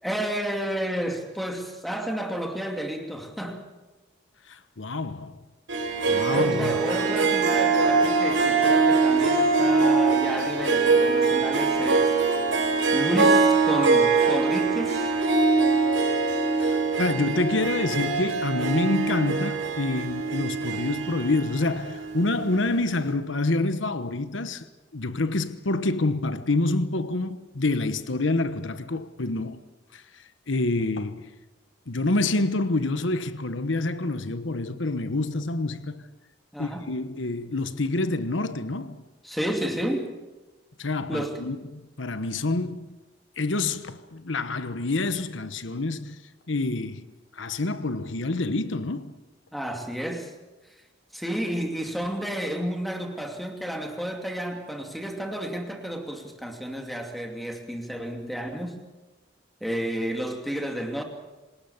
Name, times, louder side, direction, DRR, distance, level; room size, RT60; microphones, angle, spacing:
voice 1, 0.0-3.6 6.3-12.2 12.9-15.1 36.5-36.9 39.2-40.1 41.1-41.4 49.5-50.3 51.1-58.8 59.6-61.0, equal, ahead, 2.7 m, -31 dB
voice 2, 4.5-5.4 6.1-6.8 16.6-24.6 24.9-29.6 29.9-30.0 30.5-31.3 31.9-36.0 36.6-39.0 40.8-43.0 43.4-46.2 46.5-47.1 47.4-49.2, left 2 dB, 80° left, 1.2 m, -27 dB
Harp, 5.7-22.5, right 4 dB, 85° right, 4.8 m, -23 dB
26.5 x 19.5 x 7.2 m
head